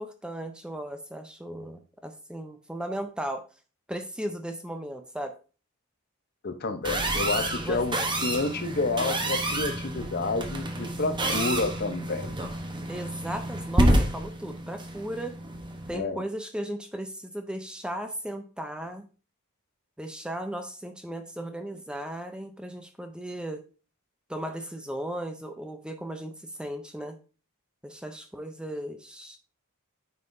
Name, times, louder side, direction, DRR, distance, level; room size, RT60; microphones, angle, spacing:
voice 1, 0.0-3.4 3.9-5.3 7.7-7.8 12.9-15.3 15.9-19.1 20.0-23.6 24.3-27.1 27.8-29.4, right 1 dB, 5° right, 7 dB, 0.5 m, -36 dB
voice 2, 6.4-7.9 8.2-12.4 15.9-16.2, left 3 dB, 45° left, 8 dB, 0.7 m, -29 dB
sound 1, 6.8-16.0, right 1 dB, 20° right, 0.9 m, -29 dB
9.1 x 5.6 x 2.6 m, 0.36 s
head